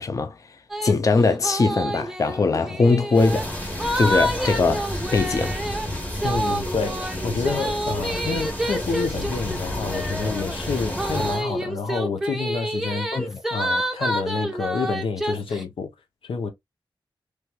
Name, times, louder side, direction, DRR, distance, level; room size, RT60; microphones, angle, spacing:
voice 1, 0.0-3.5 4.0-5.6 13.1-13.4, left 3 dB, 40° left, 0.4 m, -21 dB
sound 1, 0.7-0.9 1.2-15.6, right 1 dB, 5° right, 0.6 m, -28 dB
sound 2, 3.1-11.4, left 1 dB, 15° left, 1.3 m, -31 dB
voice 2, 6.2-13.1 13.5-15.9 16.2-16.5, left 5 dB, 85° left, 0.7 m, -28 dB
3.1 x 3.1 x 2.2 m
wide cardioid pair, 75°, 9 cm